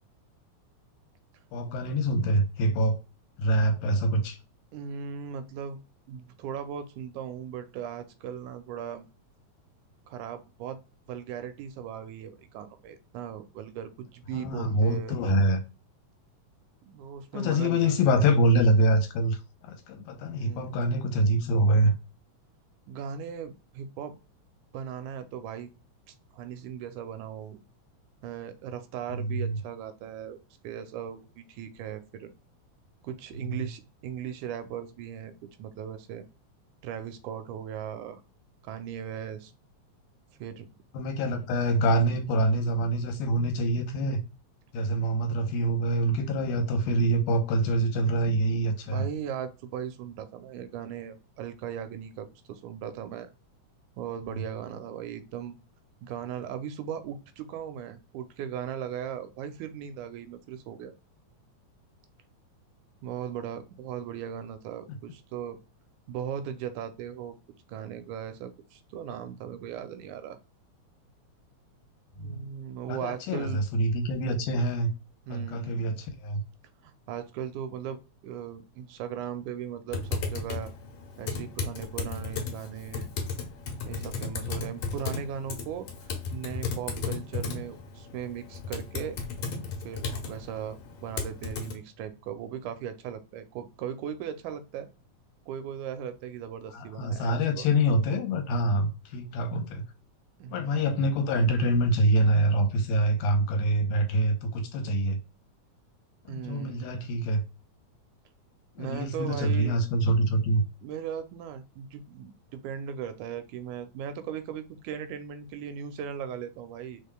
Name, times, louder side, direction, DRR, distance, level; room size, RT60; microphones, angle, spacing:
voice 1, 1.5-3.0 3.4-4.4 14.3-15.6 17.3-19.4 19.6-22.0 29.1-29.6 33.4-33.7 40.9-44.2 44.7-49.1 72.2-72.4 72.9-74.9 75.3-76.4 96.7-99.8 100.5-105.2 106.3-107.4 108.8-110.6, right 1 dB, 85° left, 2.2 m, -25 dB
voice 2, 4.7-5.8 6.1-9.1 10.1-10.8 11.1-15.4 16.8-18.3 20.4-20.8 22.9-24.2 24.7-25.7 26.1-27.6 28.2-30.4 30.6-32.3 33.0-36.3 36.8-38.2 38.6-39.5 40.4-40.7 48.8-53.3 54.0-55.5 56.0-60.9 63.0-65.6 66.1-67.3 67.7-70.4 72.2-73.6 75.3-75.9 76.8-80.7 81.2-83.1 83.8-85.9 86.3-89.2 89.8-94.9 95.5-97.7 100.4-100.8 106.3-106.9 108.8-109.8 110.8-117.0, right 8 dB, 90° right, 2.1 m, -38 dB
Typing, 79.9-91.7, left 4 dB, 65° left, 2.1 m, -35 dB
5.6 x 3.5 x 2.2 m
omnidirectional pair, 3.5 m